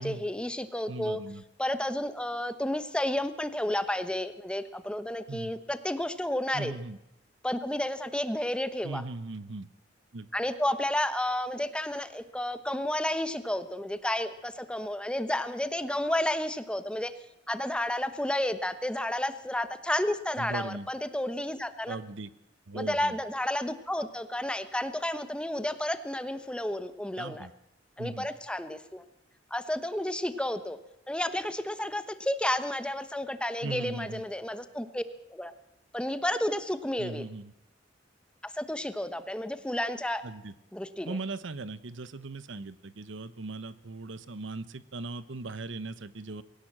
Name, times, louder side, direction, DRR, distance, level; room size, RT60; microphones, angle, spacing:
voice 1, 0.0-1.2 1.6-6.7 7.4-9.0 10.3-17.1 17.5-22.0 22.7-27.5 28.0-29.0 29.5-30.8 31.1-35.0 35.3-35.5 35.9-37.3 38.4-40.2 40.7-41.2, left 1 dB, 5° left, 11 dB, 1.0 m, -31 dB
voice 2, 0.9-1.4 5.3-5.5 6.5-7.0 8.8-9.7 10.1-10.3 20.4-20.9 21.9-22.3 22.7-23.2 27.2-27.5 28.0-28.3 33.6-34.2 37.0-37.5 40.2-40.5 41.0-46.4, right 3 dB, 75° right, 16 dB, 0.9 m, -38 dB
21.0 x 17.5 x 7.4 m, 0.86 s
head